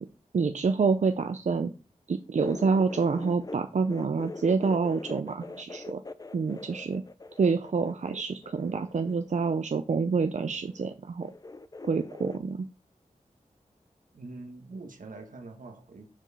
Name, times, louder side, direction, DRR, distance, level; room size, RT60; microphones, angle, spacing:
voice 1, 0.3-1.7 2.1-6.0 6.3-7.0 7.4-11.3 11.8-12.6, right 4 dB, 60° right, 0.5 m, -27 dB
sound 1, 2.4-3.6 3.8-9.3 10.4-10.9 11.2-12.4, left 3 dB, 30° left, 0.5 m, -42 dB
voice 2, 14.1-16.1, right 3 dB, 85° right, 1.3 m, -44 dB
6.1 x 4.6 x 4.8 m
wide cardioid pair, 60°, 13 cm